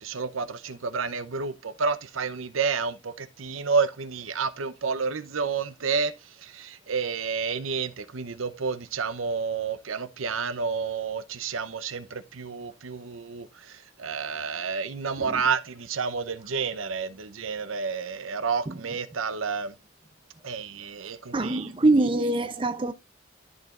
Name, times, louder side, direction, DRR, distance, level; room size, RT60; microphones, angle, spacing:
voice 1, 0.0-6.1 6.4-19.7 20.4-21.7, right 5 dB, 85° right, 0.8 m, -30 dB
voice 2, 21.3-22.9, right 2 dB, 25° right, 0.6 m, -24 dB
14.0 x 4.9 x 2.5 m
head